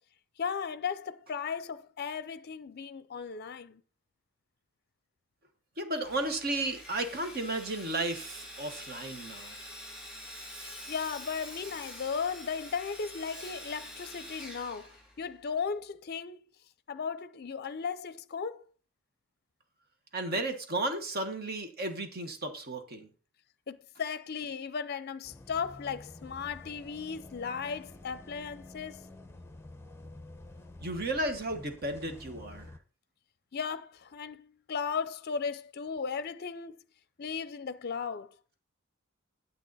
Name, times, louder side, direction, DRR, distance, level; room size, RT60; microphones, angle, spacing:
voice 1, 0.4-3.8 10.9-16.4 16.9-18.6 23.7-29.0 33.5-36.8 37.2-38.3, left 6 dB, 50° left, 0.5 m, -36 dB
voice 2, 5.8-9.5 20.1-23.1 30.8-32.7, right 2 dB, 45° right, 1.3 m, -34 dB
Sawing, 6.0-15.5, left 1 dB, 5° right, 3.8 m, -46 dB
sound 1, 25.2-32.8, left 2 dB, 10° left, 0.7 m, -49 dB
9.2 x 8.5 x 4.0 m
head